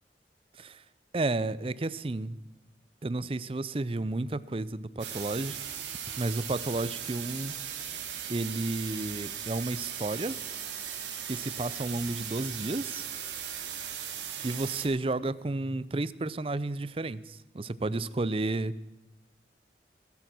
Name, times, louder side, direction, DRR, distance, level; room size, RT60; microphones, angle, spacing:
voice 1, 1.1-2.4 3.0-5.6 6.2-7.5 8.3-10.4 11.2-13.0 14.4-18.8, right 2 dB, 30° right, 17 dB, 0.5 m, -32 dB
sound 1, 5.0-14.9, right 9 dB, 90° right, 2.5 m, -38 dB
18.0 x 11.5 x 6.1 m, 1.1 s
head